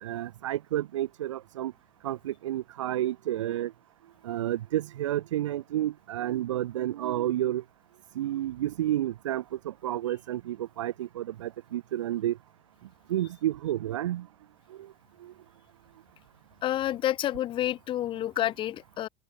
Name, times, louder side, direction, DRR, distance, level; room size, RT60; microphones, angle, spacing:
voice 1, 0.0-1.7 2.0-3.7 4.2-7.6 8.1-12.4 13.1-14.3 14.7-14.9 15.2-15.3, right 13 dB, 85° right, 1.5 m, -30 dB
voice 2, 16.6-19.1, left 12 dB, 35° left, 2.4 m, -29 dB
open air
supercardioid pair, 130°, 15 cm